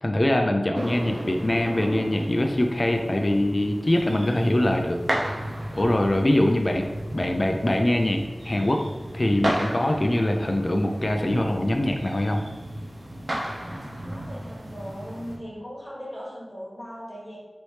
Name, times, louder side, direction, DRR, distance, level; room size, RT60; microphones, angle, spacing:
voice 1, 0.0-5.0 5.7-6.8 7.1-8.9 9.1-12.4, left 1 dB, 45° left, 3 dB, 0.3 m, -23 dB
sound 1, 0.7-15.4, right 1 dB, 75° right, 0.7 m, -34 dB
voice 2, 14.0-17.4, equal, 10° left, -5 dB, 1.5 m, -38 dB
4.1 x 3.1 x 3.2 m, 1.2 s
wide cardioid pair, 55°, 0 cm